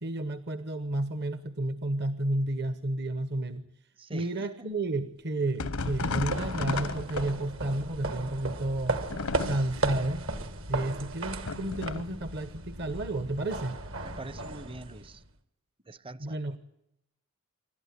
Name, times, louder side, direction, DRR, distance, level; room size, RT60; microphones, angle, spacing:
voice 1, 0.0-3.7 4.1-9.0 9.4-10.2 10.7-13.8 16.2-16.6, right 1 dB, 50° right, 11 dB, 1.1 m, -31 dB
voice 2, 4.0-4.5 14.0-15.2 15.8-16.4, right 2 dB, 25° right, 18 dB, 0.7 m, -44 dB
sound 1, 5.6-7.7 9.1-9.9 11.5-12.2, left 3 dB, 85° left, 1.0 m, -34 dB
sound 2, 5.7-15.3, right 2 dB, 65° right, 1.8 m, -36 dB
27.5 x 12.5 x 9.9 m, 0.81 s
head